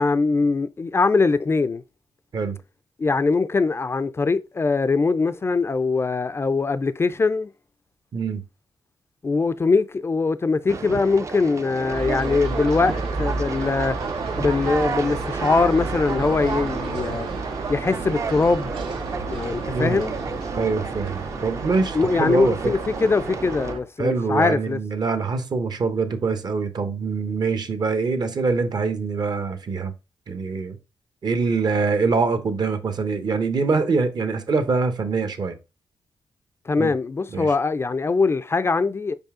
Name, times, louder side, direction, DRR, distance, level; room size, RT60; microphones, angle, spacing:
voice 1, 0.0-1.8 3.0-7.5 9.2-14.0 14.4-17.3 17.7-18.8 19.2-20.2 21.9-24.8 36.7-39.1, left 4 dB, 30° left, 0.4 m, -22 dB
voice 2, 8.1-8.4 19.7-20.0 20.5-22.7 24.0-29.9 30.3-30.8 31.2-35.6 36.8-36.9 37.3-37.5, right 4 dB, 55° right, 1.1 m, -24 dB
Conversation, 10.7-23.7, right 4 dB, 35° right, 0.5 m, -32 dB
sound 1, 11.9-23.8, right 3 dB, 85° right, 1.3 m, -31 dB
5.4 x 4.8 x 3.7 m
cardioid pair, 95°, 8 cm